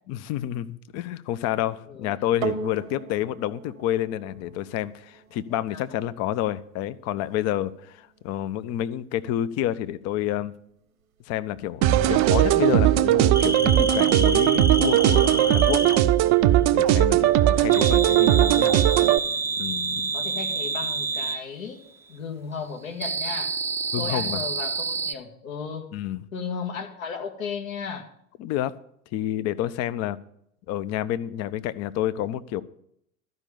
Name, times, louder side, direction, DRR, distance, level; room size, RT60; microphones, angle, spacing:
voice 1, 0.1-10.5 11.3-15.9 16.7-18.7 19.6-20.1 23.9-24.4 25.9-26.2 28.4-28.8 29.1-30.2 30.7-32.6, left 12 dB, 40° left, 15 dB, 0.6 m, -29 dB
voice 2, 1.5-2.1 5.7-5.8 20.1-21.8 22.1-23.6 24.0-25.9 26.3-28.1, left 6 dB, 70° left, 4 dB, 1.9 m, -35 dB
sound 1, 2.4-11.0 11.7-11.8, right 6 dB, 75° right, 1.1 m, -40 dB
sound 2, 11.8-19.2, right 13 dB, 40° right, 0.7 m, -19 dB
sound 3, 13.3-16.1 17.7-21.4 23.0-25.1, right 3 dB, 5° right, 0.6 m, -28 dB
12.5 x 5.3 x 8.5 m, 0.73 s
figure-of-eight pair, 80°, 41 cm